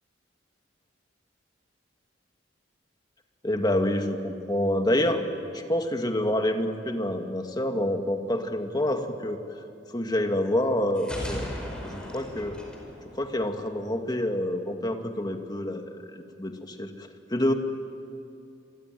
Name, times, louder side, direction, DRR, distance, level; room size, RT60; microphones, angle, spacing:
voice 1, 3.4-5.2 5.5-9.4 9.9-11.4 11.8-12.6 13.2-15.8 16.1-17.5, left 1 dB, 20° left, 5 dB, 2.1 m, -27 dB
sound 1, 11.0-13.8, equal, 5° left, 4.9 m, -37 dB
27.5 x 23.0 x 9.3 m, 2.7 s
head